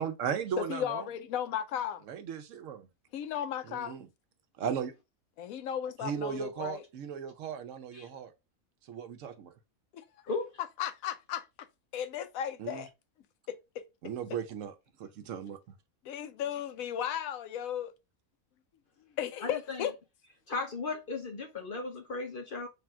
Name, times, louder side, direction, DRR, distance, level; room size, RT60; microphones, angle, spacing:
voice 1, 0.0-1.0 2.1-2.9 3.7-4.1 4.6-4.9 6.0-8.3 8.9-9.5 12.6-12.8 14.0-14.7 15.0-15.6, right 7 dB, 70° right, 0.9 m, -36 dB
voice 2, 0.6-2.0 3.1-4.0 5.4-6.8 9.9-10.0 10.8-11.4 11.9-12.9 13.5-13.6 16.0-17.9 19.2-19.9, left 9 dB, 80° left, 1.0 m, -35 dB
voice 3, 19.4-19.9 20.5-22.7, left 3 dB, 55° left, 0.6 m, -36 dB
3.3 x 2.3 x 4.3 m
omnidirectional pair, 1.4 m